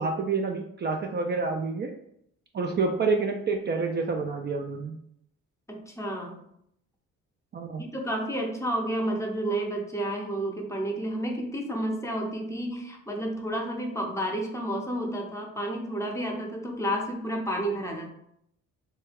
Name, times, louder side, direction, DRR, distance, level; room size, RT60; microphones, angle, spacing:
voice 1, 0.0-1.9 2.5-5.0 7.5-7.8, right 4 dB, 35° right, 2 dB, 0.4 m, -28 dB
voice 2, 5.7-6.4 7.8-18.1, right 1 dB, 10° left, 1 dB, 0.7 m, -31 dB
3.2 x 2.3 x 3.4 m, 0.73 s
cardioid pair, 90°, 30 cm